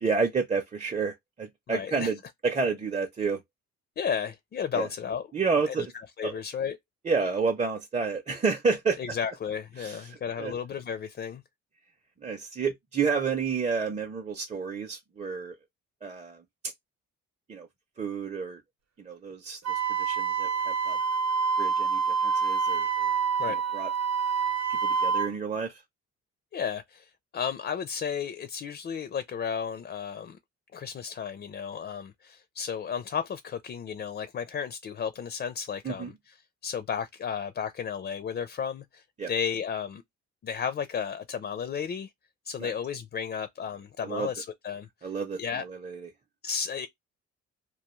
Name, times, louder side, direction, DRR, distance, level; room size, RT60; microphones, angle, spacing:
voice 1, 0.0-2.2 2.4-3.4 4.8-4.9 5.3-5.9 6.2-6.4 7.0-9.0 9.8-10.5 12.2-15.5 16.0-16.4 17.5-17.7 18.0-18.6 19.0-19.6 20.0-21.0 21.6-23.1 23.5-23.9 25.0-25.7 35.8-36.1 39.2-39.3 42.6-42.7 44.0-44.3 45.0-46.1, right 5 dB, 25° right, 0.5 m, -30 dB
voice 2, 1.7-2.1 4.0-5.3 5.6-6.8 9.0-11.4 23.4-23.6 26.5-30.4 30.7-36.4 36.6-40.0 40.4-42.1 42.5-45.1 45.4-45.7 46.4-46.9, left 7 dB, 35° left, 0.4 m, -33 dB
Wind instrument woodwind instrument, 19.7-25.3, right 5 dB, 60° right, 0.8 m, -27 dB
2.3 x 2.3 x 2.9 m
cardioid pair, 90°, 30 cm